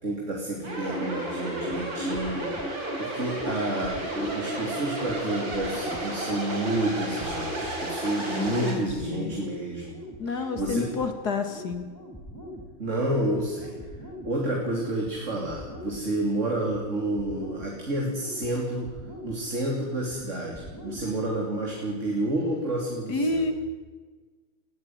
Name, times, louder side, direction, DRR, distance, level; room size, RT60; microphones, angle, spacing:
voice 1, 0.0-2.7 3.0-10.0 10.2-10.9 12.8-13.8 14.2-18.9 19.2-23.4, right 1 dB, 35° right, -1 dB, 3.4 m, -30 dB
sound 1, 0.6-8.7, right 1 dB, 60° right, 5.6 m, -32 dB
sound 2, 1.5-21.5, equal, 10° left, 5.0 m, -44 dB
voice 2, 8.3-9.3 10.2-11.9 23.1-23.5, left 3 dB, 50° left, 7 dB, 2.4 m, -29 dB
21.0 x 15.5 x 9.5 m, 1.4 s
omnidirectional pair, 2.3 m